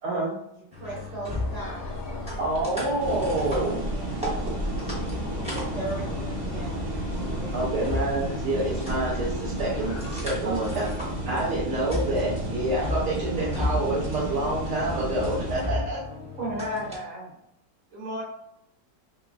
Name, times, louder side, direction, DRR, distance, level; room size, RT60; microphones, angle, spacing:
voice 1, 0.0-0.3 2.4-3.8 7.5-10.8 11.3-16.0, right 1 dB, 70° right, -6 dB, 1.4 m, -27 dB
voice 2, 0.5-1.9 3.9-7.7 10.4-11.1 11.3-11.6 15.6-16.6, right 2 dB, 30° right, -6 dB, 0.8 m, -40 dB
sound 1, 0.7-17.0, left 2 dB, 10° right, 0.4 m, -36 dB
sound 2, 1.3-10.2, equal, 65° left, 0.4 m, -36 dB
sound 3, 3.0-15.6, right 1 dB, 90° right, 0.4 m, -33 dB
voice 3, 13.2-13.7 16.4-17.3 17.9-18.2, equal, 50° right, -7 dB, 1.2 m, -33 dB
3.2 x 3.0 x 2.4 m, 0.77 s
omnidirectional pair, 1.9 m